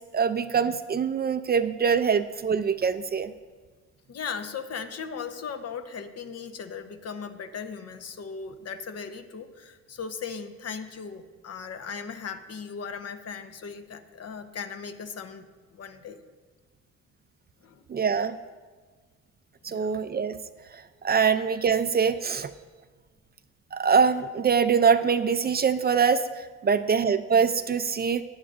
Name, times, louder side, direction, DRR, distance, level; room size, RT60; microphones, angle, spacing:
voice 1, 0.1-3.3 17.9-18.4 19.6-20.4 20.7-22.5 23.7-28.2, right 6 dB, 35° right, 11 dB, 0.4 m, -24 dB
voice 2, 4.1-15.5 15.7-16.2 17.6-17.8 19.7-19.9, left 6 dB, 55° left, 8 dB, 0.9 m, -38 dB
16.0 x 10.0 x 2.5 m, 1.4 s
cardioid pair, 90°, 30 cm